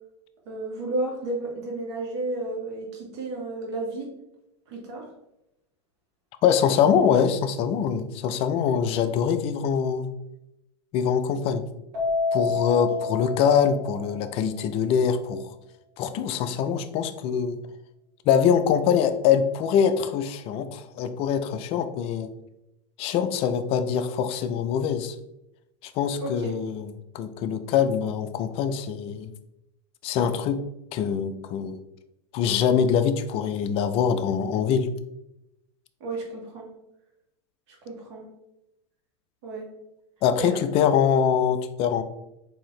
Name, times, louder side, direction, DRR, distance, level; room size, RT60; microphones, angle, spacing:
voice 1, 0.4-4.1 4.7-5.0 26.2-26.5 36.0-36.7 37.7-38.3 39.4-39.7 40.4-40.6, right 2 dB, 70° right, -1 dB, 1.3 m, -32 dB
voice 2, 6.4-10.1 10.9-11.6 12.3-15.5 16.0-17.6 18.3-22.3 23.0-25.2 25.8-29.3 30.0-30.6 30.9-31.8 32.3-34.9 40.2-42.0, left 7 dB, 40° left, 10 dB, 0.4 m, -24 dB
Keyboard (musical), 11.9-14.4, left 4 dB, 50° right, 1.3 m, -29 dB
3.8 x 2.7 x 3.1 m, 0.87 s
hypercardioid pair, 115°, 15 cm